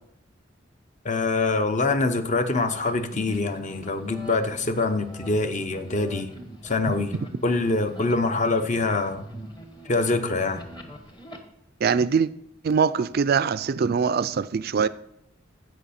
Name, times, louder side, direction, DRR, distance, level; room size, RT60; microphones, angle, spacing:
voice 1, 1.0-6.3 6.6-7.1 7.4-9.2 9.9-10.6, left 3 dB, 40° left, 0.8 m, -24 dB
sound 1, 2.4-11.4, right 1 dB, 25° left, 1.2 m, -43 dB
voice 2, 11.8-12.3 12.6-14.9, right 6 dB, 50° right, 0.4 m, -23 dB
15.0 x 5.5 x 4.3 m
head